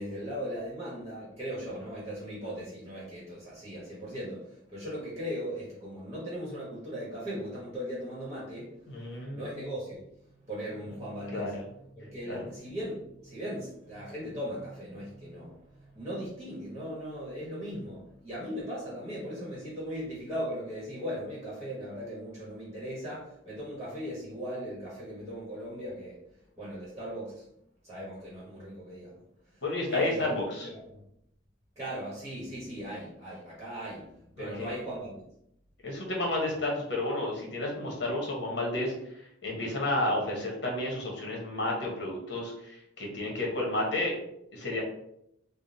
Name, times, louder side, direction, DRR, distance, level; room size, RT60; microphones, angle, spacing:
voice 1, 0.0-8.9 9.3-10.0 10.3-11.5 12.0-26.2 26.6-27.5 27.8-29.2 29.5-29.6 29.9-30.4 30.6-31.0 31.8-34.1 34.4-35.2, equal, 15° right, -7 dB, 1.1 m, -38 dB
voice 2, 8.9-9.5 11.3-11.6 12.3-12.4 29.6-30.7 34.4-34.7 35.8-38.9 39.4-44.2 44.5-44.8, left 1 dB, 60° left, -1 dB, 1.1 m, -31 dB
3.5 x 2.1 x 4.0 m, 0.78 s
head